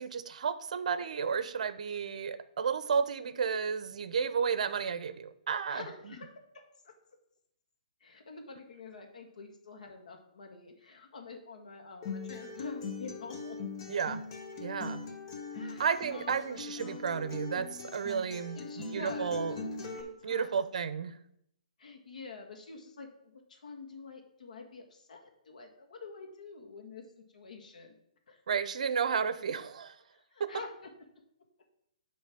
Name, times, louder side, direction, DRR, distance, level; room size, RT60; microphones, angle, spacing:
voice 1, 0.0-5.8 13.9-14.3 14.6-15.0 15.8-18.6 18.9-19.5 20.2-21.2 28.5-30.0 30.4-30.5, right 6 dB, 65° right, 14 dB, 0.6 m, -32 dB
voice 2, 5.7-6.9 8.0-13.6 15.5-17.4 18.5-19.6 19.9-20.6 21.8-28.0 28.3-28.4 30.1-30.7, left 4 dB, 70° left, 3 dB, 1.6 m, -47 dB
Acoustic guitar, 12.0-20.0, left 4 dB, 40° left, 1.2 m, -41 dB
9.0 x 3.1 x 6.1 m, 0.75 s
hypercardioid pair, 145°, 4 cm